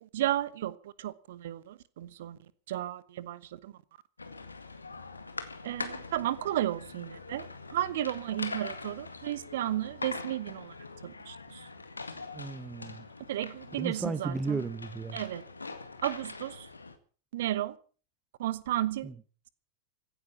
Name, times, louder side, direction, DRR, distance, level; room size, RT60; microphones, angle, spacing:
voice 1, 0.0-2.4 2.7-3.7 5.6-10.7 11.0-11.7 13.3-14.6 15.1-15.4 16.0-16.7 17.3-17.8 18.4-19.1, right 13 dB, 55° right, 1.1 m, -33 dB
sound 1, 4.2-16.9, left 3 dB, 80° left, 2.0 m, -43 dB
voice 2, 12.3-13.0 13.8-15.2 19.0-19.1, right 4 dB, 10° right, 0.9 m, -34 dB
16.0 x 10.5 x 8.2 m
figure-of-eight pair, 90°, 0 cm